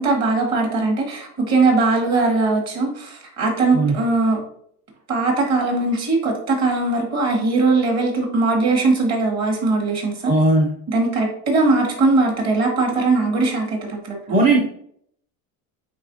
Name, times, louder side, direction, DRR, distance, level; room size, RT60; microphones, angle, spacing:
voice 1, 0.0-4.4 5.1-10.3 10.9-14.2, right 3 dB, 40° right, 2 dB, 2.1 m, -20 dB
voice 2, 10.2-10.7 14.3-14.6, right 2 dB, 20° right, 0 dB, 0.7 m, -16 dB
9.2 x 4.0 x 2.8 m, 0.66 s
supercardioid pair, 145°, 42 cm